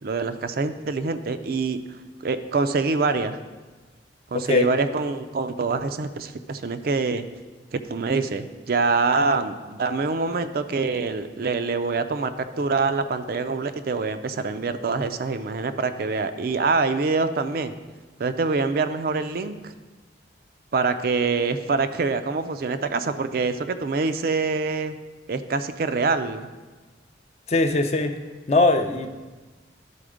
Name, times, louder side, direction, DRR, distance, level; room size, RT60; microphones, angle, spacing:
voice 1, 0.0-1.8 2.2-3.4 4.3-7.3 7.7-17.8 18.2-19.7 20.7-25.0 25.3-26.5, right 4 dB, 55° right, 9 dB, 0.4 m, -25 dB
voice 2, 4.3-4.7 27.5-28.2 28.5-29.1, left 2 dB, 35° left, 7 dB, 0.5 m, -20 dB
11.5 x 4.2 x 5.0 m, 1.3 s
head